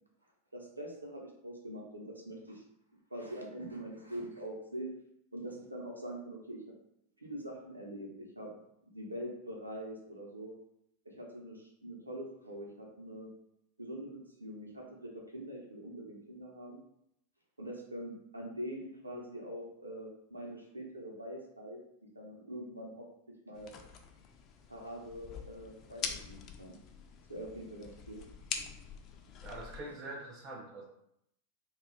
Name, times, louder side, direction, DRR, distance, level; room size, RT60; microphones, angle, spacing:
voice 1, 0.5-2.6 3.1-4.9 5.3-6.6 7.2-8.5 8.9-10.6 11.0-13.3 13.8-16.8 17.6-21.8 22.1-23.1 23.5-23.7 24.7-26.8 27.3-28.2 29.7-29.9, right 1 dB, 85° right, -1 dB, 0.6 m, -44 dB
sound 1, 23.5-29.8, left 6 dB, 35° left, 0.3 m, -44 dB
voice 2, 29.4-30.8, right 2 dB, 30° right, -1 dB, 0.4 m, -44 dB
2.3 x 2.2 x 3.2 m, 0.76 s
figure-of-eight pair, 90°, 0 cm